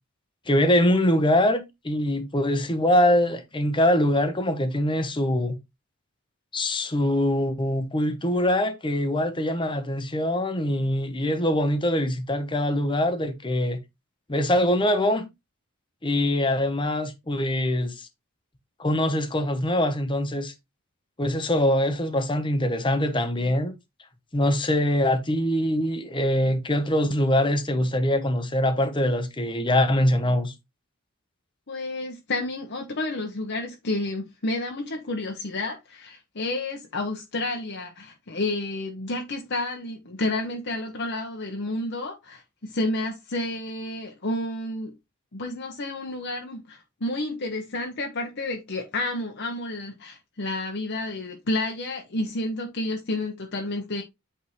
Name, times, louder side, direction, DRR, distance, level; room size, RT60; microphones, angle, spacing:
voice 1, 0.5-5.6 6.5-13.8 14.3-15.3 16.0-18.1 18.8-20.5 21.2-23.7 24.3-30.5, left 1 dB, 25° left, 1.0 m, -23 dB
voice 2, 31.7-44.9 45.3-54.0, left 2 dB, 55° left, 0.9 m, -30 dB
8.4 x 3.6 x 3.1 m
head